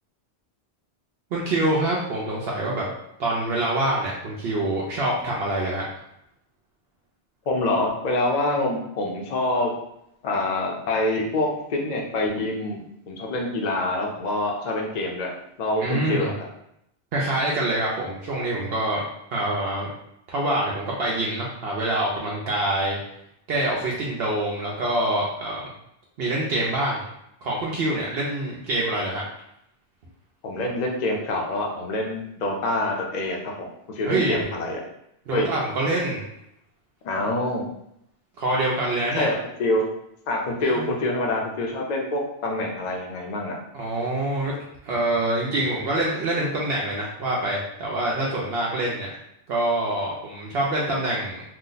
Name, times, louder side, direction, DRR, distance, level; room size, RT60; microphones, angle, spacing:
voice 1, 1.3-2.9 3.2-5.8 15.8-16.3 17.1-19.0 19.3-19.9 20.3-23.0 23.5-25.6 26.2-27.0 27.4-29.2 34.0-34.5 35.3-36.2 38.4-39.3 40.7-40.9 43.7-44.6 44.8-49.1 49.5-51.4, right 1 dB, 70° right, -4 dB, 0.8 m, -25 dB
voice 2, 7.5-9.7 10.2-12.8 13.1-15.3 15.6-16.5 30.4-34.8 35.3-35.5 37.0-37.7 39.1-39.8 40.3-43.6, left 2 dB, 50° left, 0 dB, 0.6 m, -26 dB
2.8 x 2.1 x 3.8 m, 0.78 s
omnidirectional pair, 1.1 m